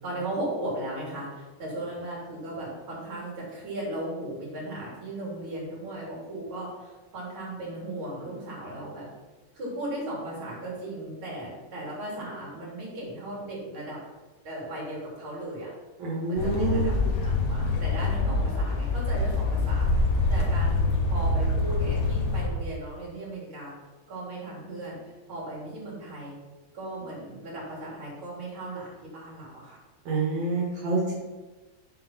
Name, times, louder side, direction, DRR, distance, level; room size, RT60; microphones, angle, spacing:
voice 1, 0.0-9.1 9.5-14.0 14.4-15.7 16.3-16.9 17.2-23.7 24.1-25.0 25.3-26.4 26.7-29.8, right 1 dB, 45° right, -5 dB, 4.0 m, -37 dB
voice 2, 16.0-17.1 30.1-31.1, right 3 dB, 75° right, -6 dB, 2.9 m, -27 dB
sound 1, 16.4-22.5, left 2 dB, 75° left, 2.6 m, -25 dB
7.8 x 5.9 x 5.8 m, 1.2 s
omnidirectional pair, 3.3 m